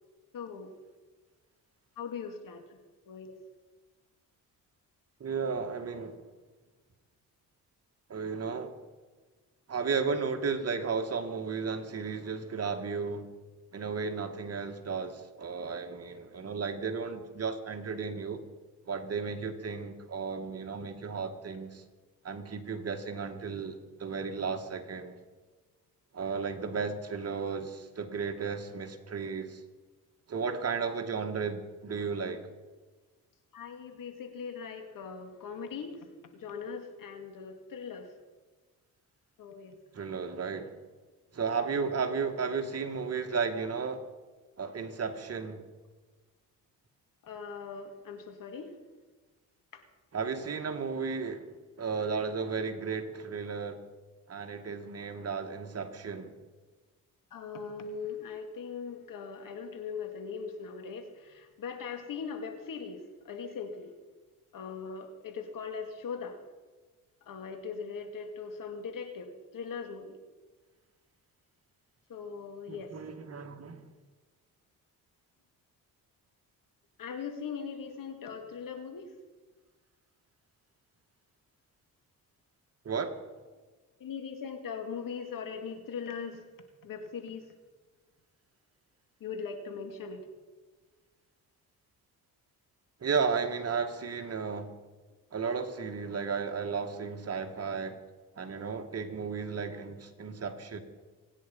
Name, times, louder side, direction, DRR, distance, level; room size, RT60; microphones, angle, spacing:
voice 1, 0.3-0.7 2.0-2.8 3.1-3.4 33.5-36.1 36.3-38.1 39.4-39.7 47.2-48.7 49.7-49.8 57.3-63.9 64.5-66.4 67.2-70.2 72.1-72.9 77.0-79.1 84.0-86.4 86.8-87.5 89.2-90.2, left 6 dB, 70° left, 6 dB, 2.6 m, -40 dB
voice 2, 5.2-6.2 8.1-8.8 9.7-13.3 13.7-18.4 18.9-21.8 22.2-25.2 26.1-29.6 30.3-32.4 39.9-40.8 41.3-44.1 44.6-45.6 50.1-51.4 51.8-53.8 54.3-56.4 72.7-73.8 82.8-83.2 93.0-94.7 95.3-98.0 98.4-100.8, right 5 dB, 45° right, 5 dB, 2.2 m, -34 dB
26.0 x 10.0 x 5.5 m, 1.3 s
cardioid pair, 85°, 35 cm